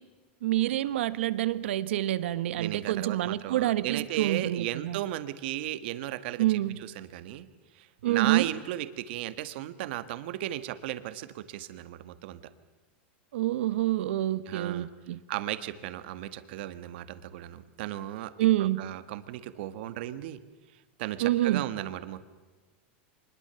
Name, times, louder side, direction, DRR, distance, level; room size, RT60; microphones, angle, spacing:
voice 1, 0.4-5.0 6.4-6.8 8.0-8.5 13.3-15.2 18.4-18.9 21.2-21.6, right 14 dB, 80° right, 15 dB, 1.2 m, -27 dB
voice 2, 2.6-7.5 7.7-12.4 14.4-14.9 15.3-18.3 18.6-20.4 21.0-22.2, right 14 dB, 65° right, 12 dB, 1.6 m, -35 dB
25.0 x 21.0 x 7.0 m, 1.3 s
supercardioid pair, 145°, 6 cm